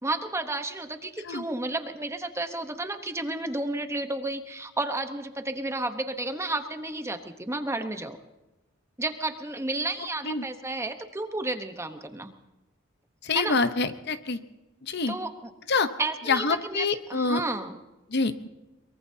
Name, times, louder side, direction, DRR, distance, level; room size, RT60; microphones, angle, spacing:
voice 1, 0.0-8.2 9.0-12.3 13.3-13.6 15.1-15.5 16.0-17.8, right 2 dB, 15° right, 7 dB, 1.0 m, -32 dB
voice 2, 13.2-14.4 14.9-15.1 15.7-15.9 16.3-17.4 18.1-18.5, left 4 dB, 55° left, 10 dB, 0.9 m, -26 dB
23.0 x 22.5 x 2.8 m, 1.1 s
head